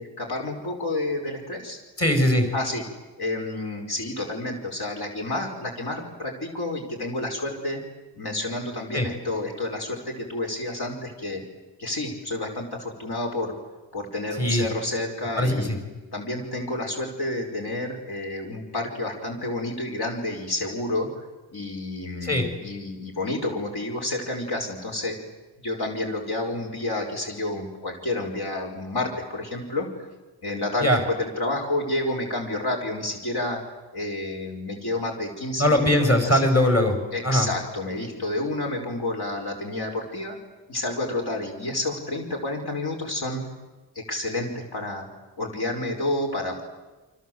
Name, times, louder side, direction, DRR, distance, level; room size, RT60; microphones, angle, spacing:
voice 1, 0.0-1.8 2.5-2.8 3.2-7.8 8.2-11.4 11.8-13.6 13.9-15.8 16.1-21.1 21.5-25.2 25.6-29.9 30.4-33.6 33.9-36.4 37.1-40.4 40.7-43.4 44.0-45.1 45.4-46.6, left 2 dB, 60° left, 1 dB, 5.1 m, -30 dB
voice 2, 2.0-2.5 8.9-9.1 14.4-14.6 15.4-15.8 22.2-22.5 30.8-31.0 35.6-37.0 37.2-37.5, left 1 dB, 35° left, 4 dB, 5.5 m, -20 dB
29.0 x 26.0 x 7.9 m, 1.2 s
wide cardioid pair, 125°, 43 cm